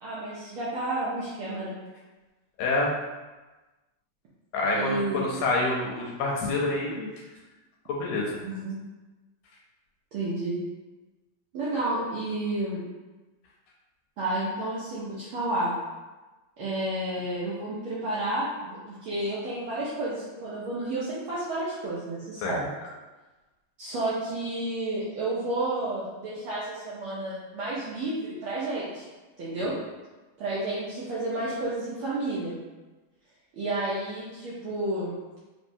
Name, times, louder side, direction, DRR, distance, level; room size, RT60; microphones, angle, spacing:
voice 1, 0.0-1.8 4.7-5.3 8.4-8.8 10.1-10.6 11.5-12.8 14.2-15.8 16.6-22.7 23.8-29.0 29.4-29.7 30.4-32.6 33.5-35.1, right 2 dB, 85° right, -9 dB, 1.1 m, -31 dB
voice 2, 2.6-2.9 4.5-7.1 7.9-8.3 22.4-22.6, left 2 dB, 75° left, -3 dB, 1.6 m, -27 dB
4.4 x 3.1 x 2.6 m, 1.2 s
omnidirectional pair, 3.3 m